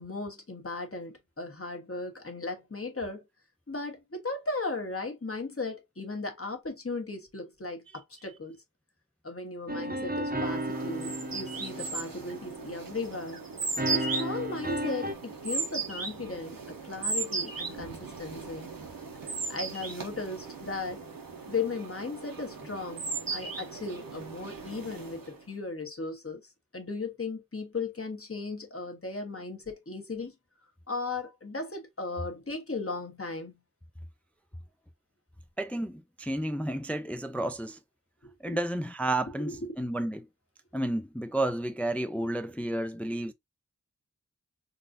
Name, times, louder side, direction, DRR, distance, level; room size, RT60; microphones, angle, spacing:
voice 1, 0.0-3.2 3.7-8.6 9.2-13.4 13.9-18.7 19.5-21.0 21.5-26.4 26.7-30.3 30.9-33.6 38.4-38.6 39.5-39.7, left 3 dB, 40° left, 1.2 m, -36 dB
sound 1, 9.7-12.9 13.8-15.1, right 1 dB, 25° right, 0.8 m, -34 dB
sound 2, 10.5-25.4, right 4 dB, 85° right, 1.0 m, -37 dB
voice 2, 35.6-37.8 38.4-40.3 40.7-43.3, right 1 dB, 5° left, 0.3 m, -31 dB
3.9 x 2.6 x 2.6 m
wide cardioid pair, 50°, 33 cm